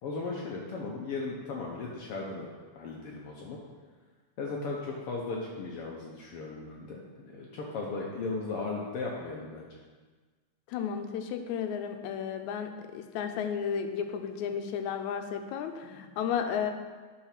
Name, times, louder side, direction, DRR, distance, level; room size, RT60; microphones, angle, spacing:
voice 1, 0.0-2.5 2.8-3.6 4.4-9.8, left 3 dB, 70° left, -2 dB, 1.5 m, -36 dB
voice 2, 10.7-16.7, left 7 dB, 90° left, 7 dB, 2.0 m, -33 dB
10.0 x 3.9 x 5.8 m, 1.4 s
omnidirectional pair, 3.3 m